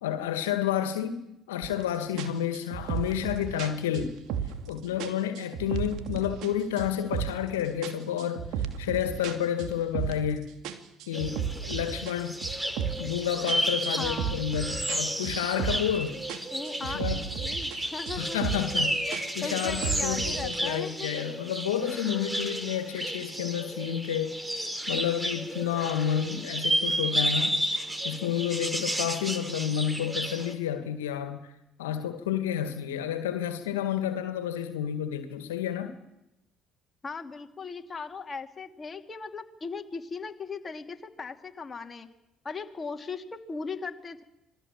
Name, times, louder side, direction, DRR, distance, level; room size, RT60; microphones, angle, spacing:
voice 1, 0.0-4.2 4.7-10.5 11.1-12.4 13.0-16.2 16.8-17.2 18.2-24.3 24.9-27.6 28.0-31.4 31.8-35.9, left 10 dB, 80° left, 9 dB, 2.0 m, -30 dB
sound 1, 1.6-1.8 2.2-4.7 5.0-6.5 6.8-7.5 7.8-10.3 10.6-13.1 13.5-16.0 16.3-17.8 18.1-18.8 19.1-20.6, right 8 dB, 65° right, 2.6 m, -34 dB
sound 2, 11.1-30.5, right 1 dB, 10° right, 3.8 m, -32 dB
voice 2, 14.0-14.4 16.5-18.4 19.1-21.2 37.0-42.1 42.4-44.2, left 4 dB, 30° left, 5 dB, 2.7 m, -38 dB
26.5 x 20.5 x 7.5 m, 0.87 s
hypercardioid pair, 55°, 0 cm